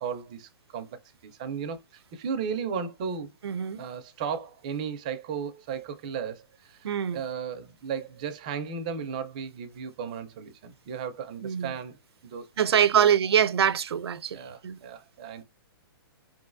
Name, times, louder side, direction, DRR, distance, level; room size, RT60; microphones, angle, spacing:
voice 1, 0.0-3.4 3.8-6.9 7.1-12.0 12.2-13.1 14.3-15.4, right 6 dB, 20° right, 0.4 m, -35 dB
voice 2, 3.4-3.8 6.8-7.2 11.4-11.7 12.6-14.8, right 8 dB, 90° right, 0.5 m, -24 dB
5.0 x 3.0 x 2.4 m
hypercardioid pair, 180°, 13 cm